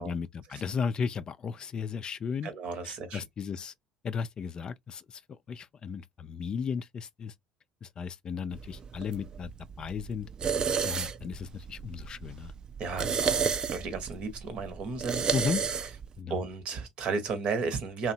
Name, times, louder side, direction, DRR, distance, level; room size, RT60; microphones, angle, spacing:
voice 1, 0.0-2.5 2.8-3.7 4.0-7.3 7.8-9.5 9.8-10.3 10.8-12.5 15.3-15.6 16.2-16.5, left 6 dB, 40° left, 0.3 m, -35 dB
voice 2, 2.4-3.2 12.8-15.3 16.3-18.1, right 4 dB, 55° right, 0.9 m, -34 dB
sound 1, 8.5-16.1, right 6 dB, 40° right, 0.4 m, -32 dB
2.7 x 2.0 x 2.6 m
hypercardioid pair, 65°, 2 cm